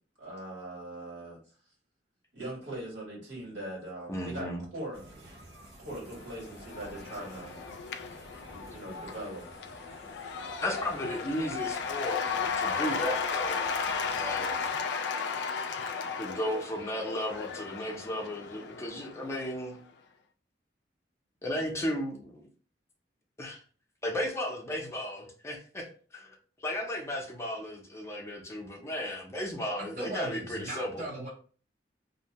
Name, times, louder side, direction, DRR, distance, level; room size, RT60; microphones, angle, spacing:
voice 1, 0.2-1.4 2.3-5.2 5.8-7.6 8.7-9.4, right 1 dB, 85° right, -3 dB, 1.5 m, -41 dB
voice 2, 4.1-4.6 10.6-12.2 12.6-13.6 14.1-14.5 16.2-19.8 21.4-22.5 23.4-23.6 24.0-25.9 26.1-31.0, left 1 dB, 15° left, 0 dB, 0.5 m, -34 dB
sound 1, 4.9-14.8, right 1 dB, 65° right, 0.9 m, -51 dB
Cheering / Applause / Crowd, 6.2-19.6, left 5 dB, 75° left, 0.3 m, -35 dB
voice 3, 29.8-31.3, right 1 dB, 45° right, -2 dB, 0.5 m, -38 dB
2.6 x 2.1 x 2.8 m, 0.40 s
head